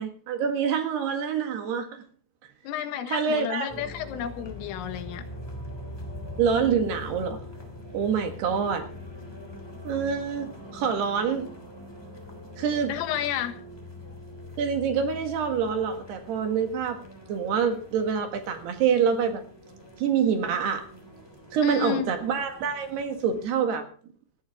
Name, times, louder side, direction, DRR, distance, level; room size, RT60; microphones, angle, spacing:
voice 1, 0.0-2.1 3.1-3.7 6.4-7.5 7.9-8.9 9.8-11.5 12.6-12.9 14.6-19.4 20.0-20.9 21.5-23.9, right 6 dB, 65° right, 6 dB, 3.4 m, -26 dB
voice 2, 2.6-5.2 12.9-13.5 21.6-22.1, left 10 dB, 90° left, 8 dB, 4.1 m, -31 dB
sound 1, 3.7-23.5, left 1 dB, 10° left, 1.5 m, -43 dB
19.0 x 14.0 x 3.6 m, 0.41 s
omnidirectional pair, 5.7 m